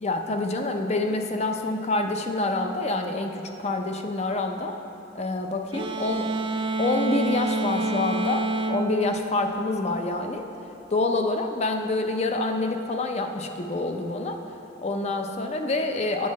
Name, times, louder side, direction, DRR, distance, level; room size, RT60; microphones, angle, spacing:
voice 1, 0.0-4.8 5.1-6.3 6.8-10.5 10.9-14.4 14.8-16.3, left 2 dB, 35° left, 5 dB, 0.5 m, -27 dB
sound 1, 5.7-10.2, right 2 dB, 25° right, 0.4 m, -28 dB
8.4 x 7.3 x 4.1 m, 2.9 s
head